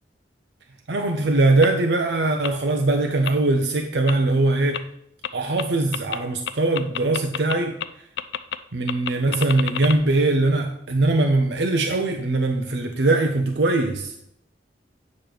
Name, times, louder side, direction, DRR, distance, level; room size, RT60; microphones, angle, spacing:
voice 1, 0.9-4.9 5.3-7.8 8.7-14.1, right 2 dB, 70° right, 4 dB, 0.6 m, -21 dB
sound 1, 1.6-1.7 2.4-2.5 3.3-3.4 4.1-4.2 4.7-4.8 5.2-5.3 5.6-5.7 5.9-6.2 6.5-7.6 7.8-7.9 8.2-8.6 8.9-10.0, left 9 dB, 75° left, 0.4 m, -28 dB
8.5 x 3.2 x 6.1 m, 0.72 s
head